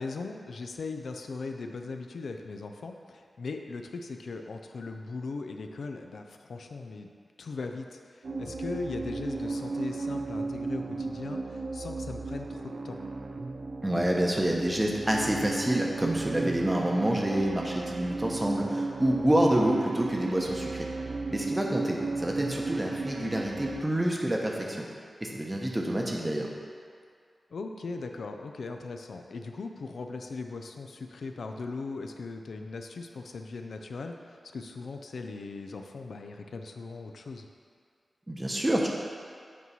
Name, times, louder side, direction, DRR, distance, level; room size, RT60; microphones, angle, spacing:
voice 1, 0.0-7.1 7.4-13.0 27.5-37.5, left 3 dB, 80° left, 4 dB, 0.4 m, -39 dB
sound 1, 8.2-23.8, right 3 dB, 80° right, 0.5 m, -34 dB
voice 2, 13.8-20.9 21.3-24.8 25.2-26.5 38.3-38.9, right 1 dB, 15° right, -1 dB, 0.8 m, -28 dB
8.1 x 3.1 x 5.5 m, 2.1 s
wide cardioid pair, 115°, 0 cm